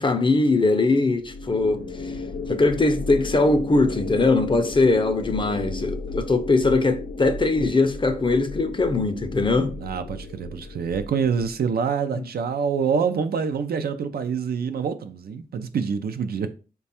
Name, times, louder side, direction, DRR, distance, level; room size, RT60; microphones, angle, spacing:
voice 1, 0.0-2.2 2.5-9.7 12.2-12.3, left 3 dB, 30° left, 0.5 m, -21 dB
sound 1, 1.2-11.7, left 3 dB, 85° left, 0.5 m, -34 dB
voice 2, 9.8-16.5, right 6 dB, 70° right, 0.4 m, -26 dB
3.2 x 2.2 x 4.1 m
cardioid pair, 60°, 16 cm